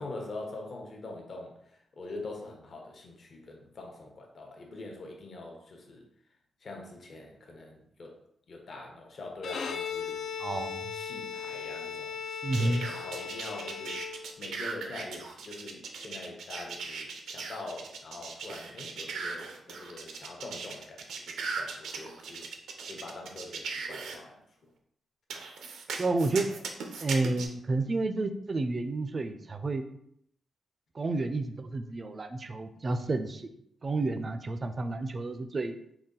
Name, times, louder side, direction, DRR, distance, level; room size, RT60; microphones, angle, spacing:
voice 1, 0.0-6.1 6.6-8.2 8.5-10.3 10.9-22.5 22.9-24.4, left 2 dB, 55° left, 1 dB, 0.8 m, -44 dB
Bowed string instrument, 9.4-14.6, left 6 dB, 80° left, 0.3 m, -38 dB
voice 2, 10.4-10.9 12.4-12.9 26.0-26.5 27.0-29.8 30.9-33.5 33.8-35.8, right 2 dB, 35° right, 8 dB, 0.4 m, -30 dB
sound 1, 12.5-24.2 25.3-27.5, right 4 dB, 90° right, 0.5 m, -38 dB
3.9 x 2.3 x 3.8 m, 0.73 s
cardioid pair, 100°, 0 cm